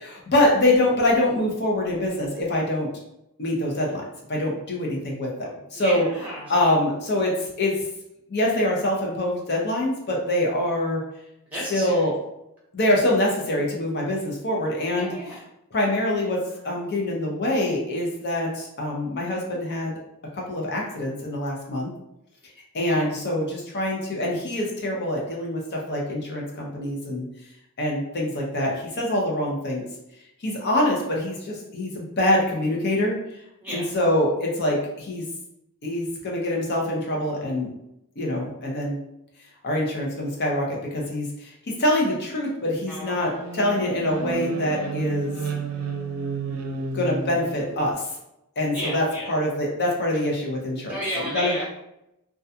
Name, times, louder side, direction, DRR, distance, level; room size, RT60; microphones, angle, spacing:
voice 1, 0.3-2.9 3.4-4.0 4.3-6.0 6.5-7.7 8.3-11.0 11.7-12.1 12.7-15.2 15.7-20.0 20.3-21.9 22.7-27.2 27.8-29.9 30.4-33.1 33.7-35.3 35.8-37.7 38.2-39.0 39.6-41.5 41.8-45.4 46.5-46.6 46.9-48.1 48.6-51.0 51.3-51.5, left 1 dB, 50° left, -1 dB, 0.6 m, -24 dB
voice 2, 5.7-6.7 11.5-12.0 15.0-15.4 22.9-23.1 33.6-33.9 42.9-43.6 48.7-49.3 50.9-51.7, equal, 5° right, -5 dB, 0.8 m, -33 dB
sound 1, 42.9-47.9, right 4 dB, 65° right, 0.4 m, -32 dB
2.3 x 2.2 x 2.7 m, 0.84 s
head